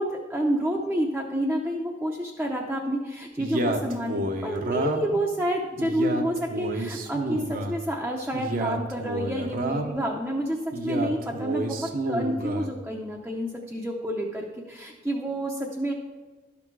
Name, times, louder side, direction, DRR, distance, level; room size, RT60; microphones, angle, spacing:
voice 1, 0.0-11.8 12.1-15.9, equal, 5° right, -2 dB, 0.7 m, -29 dB
Male speech man speaking, 3.4-5.2 5.8-7.8 8.3-10.0 10.7-12.7, right 1 dB, 50° right, 0.8 m, -30 dB
12.0 x 6.0 x 4.7 m, 1.3 s
head